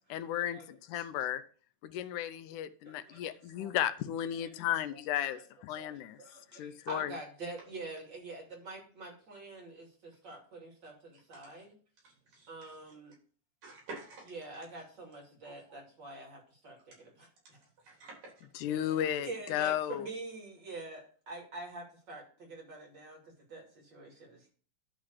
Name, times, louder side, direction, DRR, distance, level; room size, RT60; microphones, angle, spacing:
voice 1, 0.1-1.4 1.8-6.2 6.5-7.2 18.6-20.1, left 11 dB, 80° left, 2.1 m, -34 dB
voice 2, 2.8-3.7 4.3-4.5 4.9-5.0 5.3-5.4 5.7-11.8 12.5-13.1 14.3-17.6 18.7-24.5, right 2 dB, 35° right, 3.2 m, -46 dB
voice 3, 12.0-12.7 13.6-14.3 15.7-15.8 17.8-18.4, right 3 dB, 80° right, 5.2 m, -48 dB
11.5 x 4.0 x 6.3 m
omnidirectional pair, 3.7 m